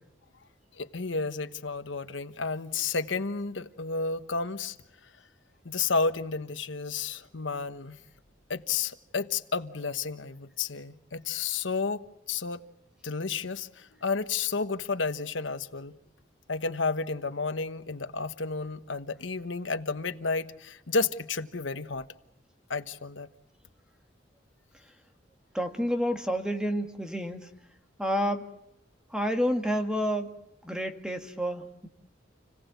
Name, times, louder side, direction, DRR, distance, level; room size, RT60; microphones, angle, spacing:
voice 1, 0.7-4.8 5.6-8.0 8.5-12.6 13.0-16.0 16.5-22.1 22.7-23.3, left 4 dB, 80° left, 1.2 m, -31 dB
voice 2, 25.5-27.5 28.0-28.4 29.1-30.4 30.6-31.9, equal, 5° right, 1.8 m, -29 dB
30.0 x 17.5 x 8.3 m
head